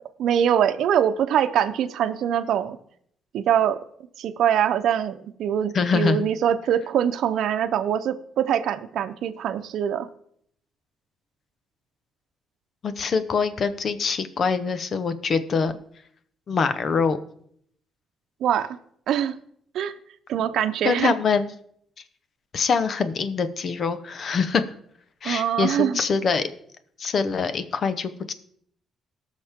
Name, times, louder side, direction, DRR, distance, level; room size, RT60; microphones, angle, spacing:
voice 1, 0.2-2.8 3.3-3.8 4.2-10.1 18.4-18.7 19.1-19.3 19.7-19.9 20.3-21.1 25.2-26.0, right 9 dB, 75° right, 8 dB, 0.8 m, -23 dB
voice 2, 5.7-6.2 12.8-15.7 16.5-17.2 20.8-21.4 22.5-24.6 25.2-26.5 27.0-28.3, left 5 dB, 50° left, 11 dB, 1.1 m, -24 dB
18.5 x 6.4 x 3.7 m, 0.66 s
cardioid pair, 90°, 0 cm